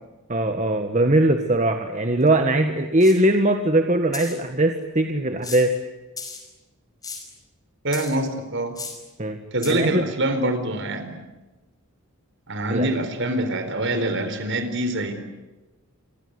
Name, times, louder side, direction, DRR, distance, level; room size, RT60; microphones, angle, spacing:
voice 1, 0.3-5.7 9.2-9.4 9.7-10.0 12.7-12.9, right 1 dB, 35° right, 6 dB, 1.6 m, -20 dB
sound 1, 2.3-2.4 3.0-3.2 4.1-4.4 5.4-5.8 6.2-6.4 7.0-7.3 7.9-8.3 8.7-9.0 9.6-9.7, left 5 dB, 15° left, 5.2 m, -35 dB
voice 2, 7.8-8.8 9.5-11.2 12.5-15.1, right 1 dB, 55° right, 9 dB, 4.4 m, -25 dB
28.5 x 24.0 x 8.2 m, 1.2 s
head